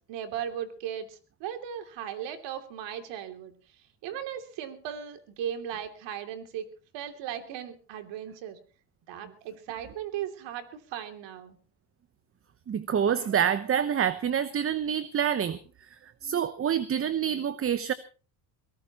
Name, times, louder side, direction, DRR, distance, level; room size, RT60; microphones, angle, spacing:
voice 1, 0.1-3.5 4.0-6.7 6.9-8.6 9.1-11.6, right 9 dB, 65° right, 7 dB, 3.0 m, -37 dB
voice 2, 12.7-15.6 15.9-17.9, right 8 dB, 30° right, 13 dB, 1.0 m, -27 dB
22.5 x 18.0 x 3.0 m, 0.37 s
supercardioid pair, 100°, 46 cm